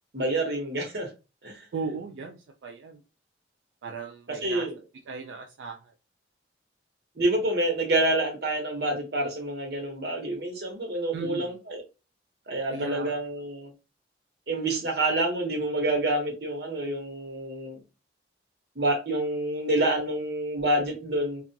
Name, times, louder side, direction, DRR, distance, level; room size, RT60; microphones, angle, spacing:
voice 1, 0.1-1.1 1.4-1.7 4.4-4.8 7.2-11.8 12.5-13.7 14.5-17.8 18.8-21.4, right 1 dB, 60° right, 1.0 m, -27 dB
voice 2, 1.7-3.0 3.8-4.7 5.1-5.9 11.1-11.5 12.7-13.1, right 4 dB, 90° right, 0.4 m, -37 dB
2.4 x 2.2 x 2.6 m
head